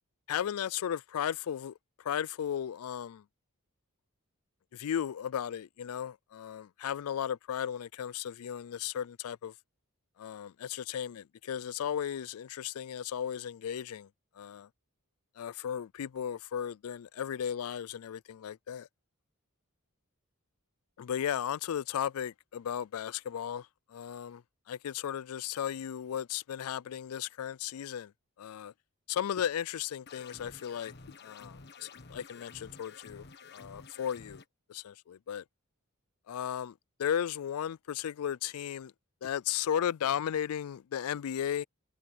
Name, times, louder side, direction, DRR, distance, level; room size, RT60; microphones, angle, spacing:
voice 1, 0.3-1.7 2.0-3.2 4.7-9.5 10.2-14.1 14.4-14.7 15.4-18.9 21.0-24.4 24.7-28.1 28.4-28.7 29.1-30.9 31.2-33.2 33.5-34.4 34.7-35.4 36.3-36.7 37.0-38.9 39.2-41.6, left 9 dB, 70° left, 0.4 m, -35 dB
sound 1, 30.1-34.4, left 4 dB, 50° left, 1.5 m, -51 dB
head